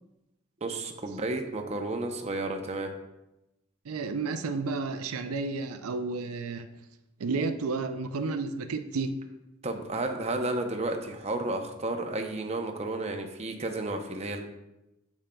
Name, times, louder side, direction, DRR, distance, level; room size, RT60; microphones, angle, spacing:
voice 1, 0.6-2.9 9.6-14.4, right 2 dB, 30° right, 4 dB, 0.6 m, -32 dB
voice 2, 3.9-6.7 7.2-9.1, right 4 dB, 85° right, 8 dB, 0.5 m, -31 dB
8.6 x 7.2 x 2.2 m, 0.93 s
head